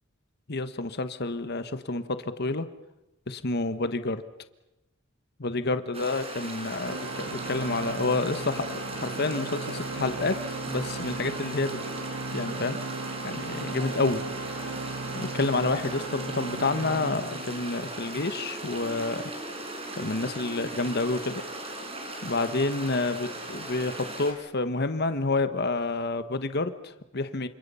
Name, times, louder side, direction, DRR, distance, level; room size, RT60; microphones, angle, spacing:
voice 1, 0.5-2.0 2.4-2.7 3.3-4.2 5.4-10.4 10.7-11.8 12.3-12.8 13.2-14.2 14.6-14.7 15.1-19.2 20.0-21.4 22.2-27.5, left 3 dB, 50° left, 10 dB, 1.3 m, -29 dB
sound 1, 5.9-24.3, right 2 dB, 30° right, 5.0 m, -38 dB
Organ, 6.8-18.0, right 3 dB, 70° right, 0.9 m, -37 dB
sound 2, 18.0-22.7, right 2 dB, 10° right, 2.4 m, -47 dB
29.5 x 26.5 x 5.7 m, 0.96 s
head